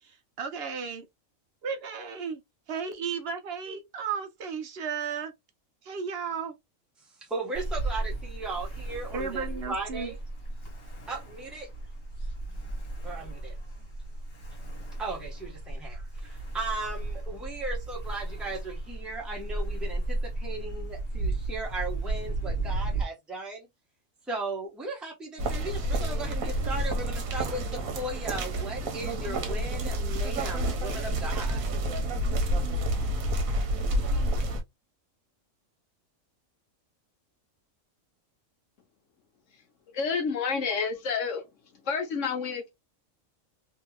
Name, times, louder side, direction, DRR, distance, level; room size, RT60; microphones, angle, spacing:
voice 1, 0.0-1.1 1.6-2.4 2.7-5.3 5.8-6.6 9.1-10.1, right 6 dB, 55° right, 0.9 m, -34 dB
voice 2, 7.0-10.2 11.1-11.7 12.6-12.7 13.0-13.9 15.0-23.7 24.3-31.7, right 2 dB, ahead, 0.9 m, -37 dB
Ocean, 7.5-23.0, right 2 dB, 50° left, 1.2 m, -34 dB
sound 1, 25.4-34.6, right 1 dB, 85° right, 1.2 m, -29 dB
voice 3, 39.9-41.5 41.8-42.7, left 5 dB, 70° left, 1.2 m, -29 dB
2.9 x 2.7 x 2.3 m
omnidirectional pair, 1.4 m